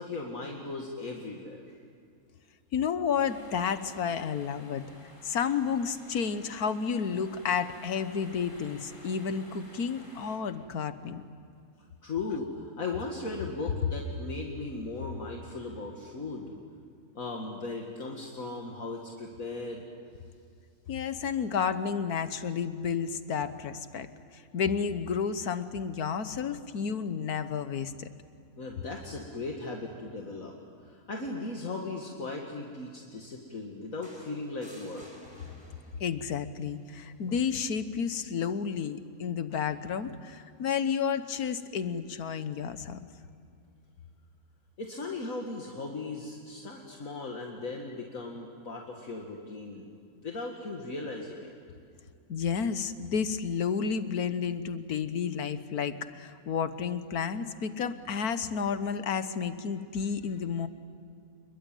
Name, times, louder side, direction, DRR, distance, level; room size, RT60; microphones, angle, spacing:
voice 1, 0.0-1.8 12.0-16.5 17.1-19.9 28.6-35.1 44.8-49.9 50.1-51.5, left 3 dB, 65° left, 0 dB, 2.4 m, -37 dB
voice 2, 2.7-4.8 5.2-11.2 20.9-28.1 36.0-43.0 52.3-60.7, left 6 dB, 85° left, 11 dB, 1.6 m, -31 dB
sound 1, 3.2-10.4, left 1 dB, 35° left, 4.9 m, -53 dB
sound 2, 34.0-36.2 37.6-37.8, equal, 15° left, 4.4 m, -53 dB
28.0 x 22.0 x 9.1 m, 2.4 s
omnidirectional pair, 1.5 m